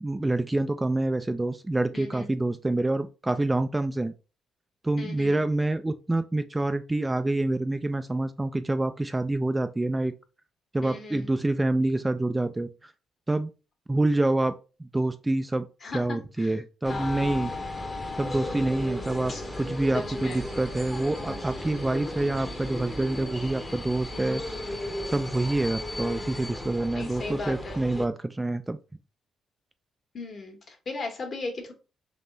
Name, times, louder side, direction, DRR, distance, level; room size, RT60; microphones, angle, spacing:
voice 1, 0.0-4.1 4.8-10.1 10.7-12.9 13.3-13.5 13.9-15.7 15.9-17.5 18.2-24.4 25.1-28.8, right 2 dB, 15° right, 0.3 m, -27 dB
voice 2, 1.9-2.3 5.0-5.5 10.8-11.3 15.8-16.5 16.9-17.4 19.3-19.4 19.9-20.4 24.1-24.4 26.9-27.8 30.1-31.7, left 3 dB, 45° left, 1.4 m, -37 dB
sound 1, 16.8-28.1, left 1 dB, 15° left, 0.9 m, -35 dB
3.6 x 2.9 x 3.9 m
cardioid pair, 90°, 0 cm